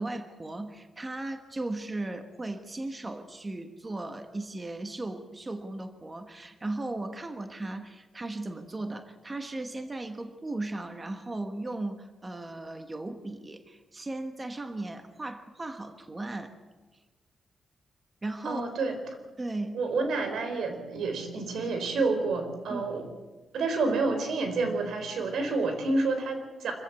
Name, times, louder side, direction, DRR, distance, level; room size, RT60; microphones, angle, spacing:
voice 1, 0.0-16.5 18.2-18.6 19.4-19.8 22.7-22.8, right 2 dB, 20° right, 7 dB, 1.2 m, -36 dB
voice 2, 18.4-19.0 19.7-23.1 23.5-26.7, right 3 dB, 90° right, 6 dB, 4.1 m, -29 dB
25.5 x 15.5 x 8.1 m, 1.3 s
wide cardioid pair, 165°, 0 cm